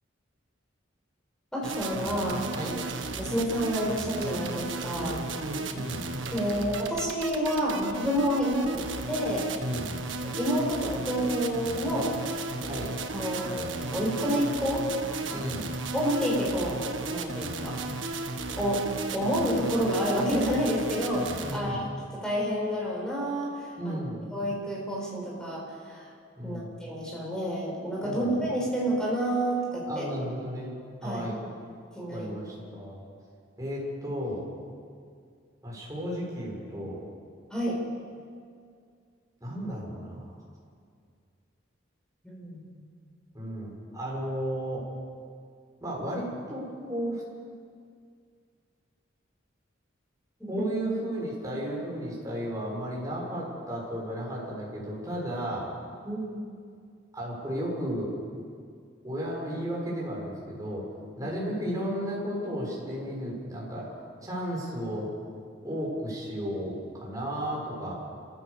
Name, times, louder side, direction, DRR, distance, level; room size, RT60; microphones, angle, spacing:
voice 1, 1.5-2.8 3.1-5.2 6.3-9.5 10.2-12.2 12.6-12.7 13.1-14.8 15.9-17.8 18.6-18.8 19.1-21.8 22.1-24.0 24.3-26.1 26.4-30.1 31.0-31.2 32.0-32.3 37.5-37.8 42.2-42.7 50.4-50.6 56.0-56.4, equal, 5° left, -4 dB, 7.0 m, -29 dB
sound 1, 1.6-21.6, right 3 dB, 75° right, 1.7 m, -35 dB
voice 2, 5.0-6.1 9.6-10.0 12.7-13.0 15.2-15.7 21.4-21.9 23.8-24.3 26.4-26.7 28.0-28.3 29.9-30.8 31.0-31.4 32.1-33.0 33.6-34.4 35.6-37.1 39.4-40.3 43.3-44.8 45.8-47.2 50.5-55.7 57.1-58.1 59.0-60.8 61.2-63.9 64.2-65.1 65.6-68.0, equal, 20° right, -4 dB, 6.9 m, -34 dB
27.5 x 15.5 x 7.1 m, 2.2 s
head